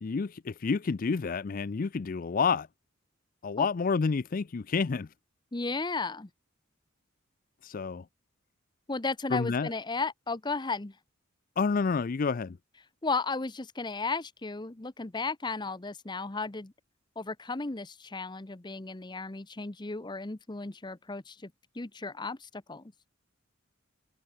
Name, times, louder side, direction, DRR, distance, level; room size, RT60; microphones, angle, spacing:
voice 1, 0.0-2.7 3.4-5.1 7.6-8.1 9.3-9.7 11.6-12.6, left 5 dB, 45° left, 0.4 m, -29 dB
voice 2, 5.5-6.3 8.9-10.9 13.0-16.7 17.2-22.9, left 3 dB, 20° left, 0.8 m, -34 dB
head